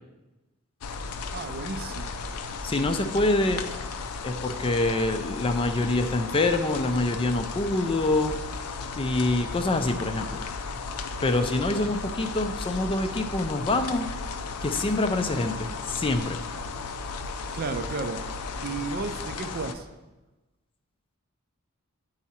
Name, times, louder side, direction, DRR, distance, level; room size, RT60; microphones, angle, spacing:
sound 1, 0.8-19.7, left 4 dB, 85° left, 0.5 m, -35 dB
voice 1, 1.3-2.1 17.5-18.2 18.6-19.9, right 4 dB, 45° right, 9 dB, 0.5 m, -33 dB
voice 2, 2.6-3.6 4.2-8.3 9.0-10.4 11.2-14.1 14.6-16.4, left 2 dB, 25° left, 8 dB, 0.4 m, -26 dB
9.1 x 4.8 x 4.2 m, 1.1 s
head